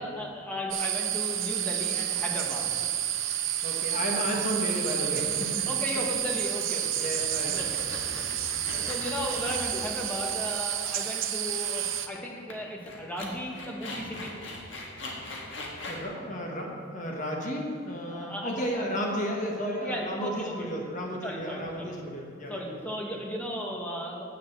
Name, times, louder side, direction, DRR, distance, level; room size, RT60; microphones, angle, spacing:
voice 1, 0.0-2.7 5.7-7.0 7.4-7.8 8.3-8.4 8.8-14.3 18.1-18.7 19.8-20.7 21.2-21.9 22.5-24.2, equal, 10° left, -2 dB, 1.2 m, -35 dB
sound 1, 0.7-12.1, right 11 dB, 75° right, 0.6 m, -30 dB
voice 2, 3.6-5.7 5.9-6.1 7.0-8.0 8.7-8.9 15.9-22.6, equal, 40° left, 0 dB, 1.2 m, -33 dB
sound 2, 4.2-4.5 5.0-5.3 5.5-5.6 5.9-6.2 6.7-10.6 10.9-11.0 12.1-12.2 12.5-12.6 12.8-16.0, left 2 dB, 65° left, 1.5 m, -41 dB
7.9 x 6.9 x 6.5 m, 2.2 s
head